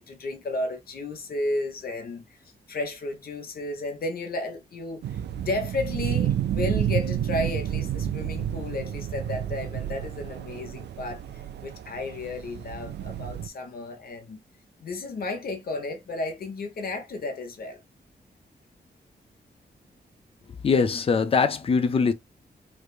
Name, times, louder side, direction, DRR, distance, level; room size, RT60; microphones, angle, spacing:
voice 1, 0.1-2.2 2.7-11.2 11.6-14.4 14.8-17.8, left 2 dB, 60° left, 1.0 m, -33 dB
sound 1, 5.0-13.5, right 10 dB, 80° right, 0.4 m, -30 dB
voice 2, 20.6-22.1, left 5 dB, 35° left, 0.5 m, -22 dB
3.3 x 3.2 x 2.4 m
wide cardioid pair, 160°, 17 cm